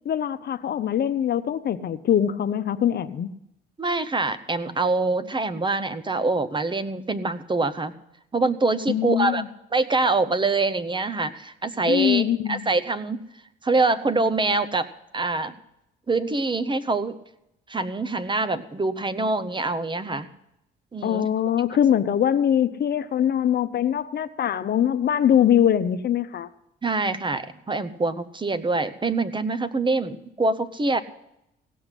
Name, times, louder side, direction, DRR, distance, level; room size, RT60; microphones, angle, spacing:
voice 1, 0.0-3.3 8.9-9.5 11.9-12.6 21.0-26.5, left 9 dB, 55° left, 11 dB, 0.8 m, -22 dB
voice 2, 3.8-7.9 8.3-9.4 9.7-13.2 13.6-14.9 15.1-15.5 16.1-17.2 17.7-20.3 20.9-21.3 26.8-31.0, right 3 dB, 25° right, 12 dB, 0.8 m, -25 dB
17.0 x 5.8 x 9.9 m, 0.83 s
cardioid pair, 90°, 20 cm